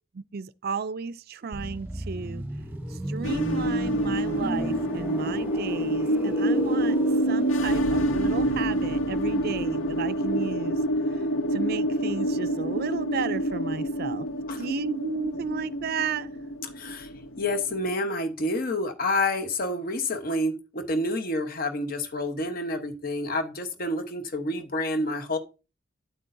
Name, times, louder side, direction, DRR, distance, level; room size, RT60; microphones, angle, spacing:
voice 1, 0.1-2.4 3.1-7.0 7.3-10.8 11.5-14.2 14.6-16.3, right 5 dB, 50° right, 0.4 m, -33 dB
sound 1, 1.5-11.2 11.4-11.7, equal, 10° right, 1.0 m, -36 dB
sound 2, 3.2-17.9, right 1 dB, 90° left, 0.8 m, -27 dB
voice 2, 16.8-17.1 17.4-25.4, left 1 dB, 45° left, 1.0 m, -28 dB
9.3 x 8.3 x 2.6 m
head